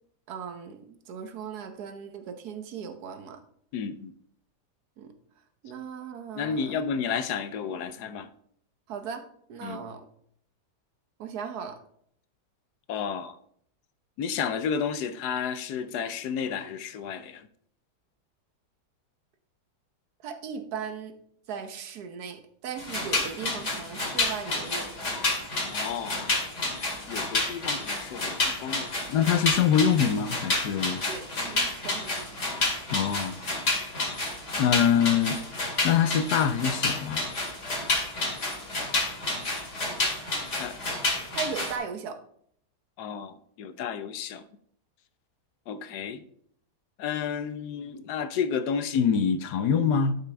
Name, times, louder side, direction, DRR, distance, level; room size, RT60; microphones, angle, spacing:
voice 1, 0.3-3.4 5.0-5.1 5.6-6.8 8.9-9.2 9.5-10.0 11.2-11.8 20.2-21.2 21.5-24.9 31.1-32.4 41.3-42.2, right 6 dB, 70° right, 1.5 m, -38 dB
voice 2, 3.7-4.1 6.4-8.3 9.6-9.8 12.9-13.3 14.2-17.5 25.7-26.4 27.1-31.0 32.9-33.4 34.6-35.4 35.8-37.2 40.5-40.7 43.0-44.4 45.7-46.2 47.0-50.2, left 7 dB, 75° left, 1.2 m, -27 dB
sound 1, 22.8-41.7, left 2 dB, 45° left, 2.5 m, -30 dB
11.5 x 6.0 x 3.4 m
omnidirectional pair, 1.8 m